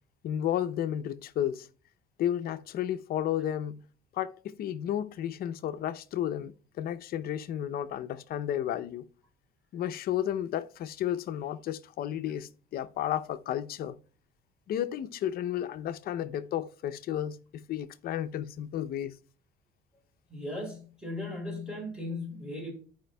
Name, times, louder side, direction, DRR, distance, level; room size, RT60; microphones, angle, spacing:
voice 1, 0.2-1.7 2.2-3.8 4.1-9.0 9.7-14.0 14.7-19.2, left 11 dB, 60° left, 0.6 m, -32 dB
voice 2, 20.3-22.7, left 1 dB, 5° right, 4.0 m, -37 dB
14.0 x 5.0 x 2.2 m
cardioid pair, 110°, 17 cm